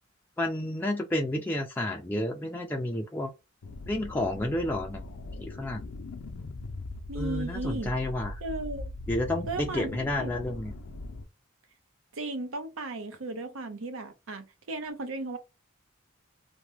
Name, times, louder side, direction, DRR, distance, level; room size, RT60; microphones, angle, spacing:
voice 1, 0.4-3.3 3.9-5.1 5.4-5.9 7.2-8.4 9.1-10.7, left 1 dB, 10° left, 0.3 m, -30 dB
sound 1, 3.6-11.2, left 2 dB, 90° left, 0.5 m, -40 dB
voice 2, 7.1-7.9 8.4-8.9 9.5-10.3 12.1-15.4, right 2 dB, 85° right, 0.7 m, -36 dB
2.9 x 2.1 x 3.2 m
head